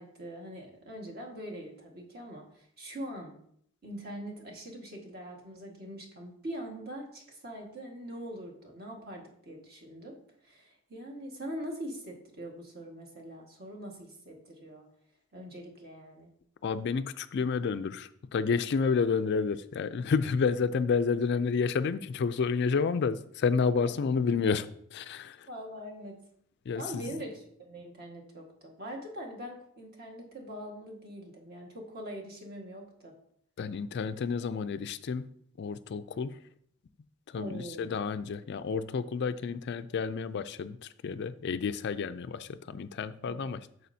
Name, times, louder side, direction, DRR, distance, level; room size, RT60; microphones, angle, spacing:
voice 1, 0.0-3.3 3.8-10.2 10.4-14.8 15.3-16.3 23.8-23.9 25.5-26.2 26.7-33.1 37.3-38.0 43.2-43.4, equal, 45° right, 0 dB, 1.7 m, -43 dB
voice 2, 16.6-25.5 26.7-27.2 33.6-35.3 35.6-36.4 37.3-43.7, left 5 dB, 50° left, 12 dB, 0.3 m, -30 dB
8.5 x 6.7 x 2.7 m, 0.66 s
head